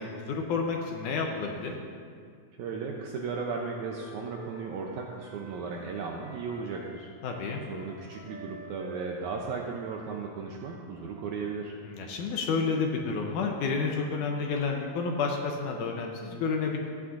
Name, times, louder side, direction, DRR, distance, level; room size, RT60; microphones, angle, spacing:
voice 1, 0.0-1.7 7.2-7.6 11.9-16.8, left 4 dB, 75° left, 2 dB, 2.0 m, -30 dB
voice 2, 2.6-7.1 7.7-11.8, right 5 dB, 80° right, 0 dB, 1.8 m, -36 dB
Wind instrument woodwind instrument, 3.2-7.0 7.2-11.3, right 2 dB, 60° right, 2.8 m, -48 dB
17.0 x 8.5 x 2.5 m, 2.2 s
omnidirectional pair, 4.1 m